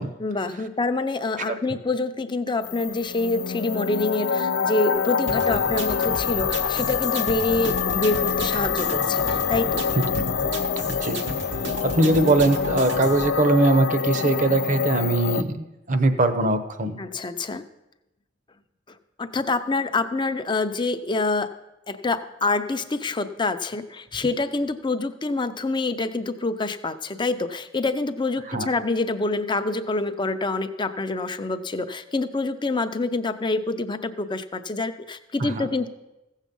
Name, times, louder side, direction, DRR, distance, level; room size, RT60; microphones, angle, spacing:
voice 1, 0.2-9.9 17.0-17.6 18.9-21.5 21.9-35.9, left 3 dB, 25° left, 9 dB, 0.6 m, -26 dB
sound 1, 2.6-15.4, left 7 dB, 90° left, 0.5 m, -26 dB
sound 2, 5.3-13.3, right 2 dB, 70° right, 1.1 m, -34 dB
voice 2, 10.9-11.2 11.8-17.0 28.5-28.7 35.4-35.7, right 2 dB, 45° right, 8 dB, 0.9 m, -21 dB
15.5 x 7.3 x 5.4 m, 0.95 s
head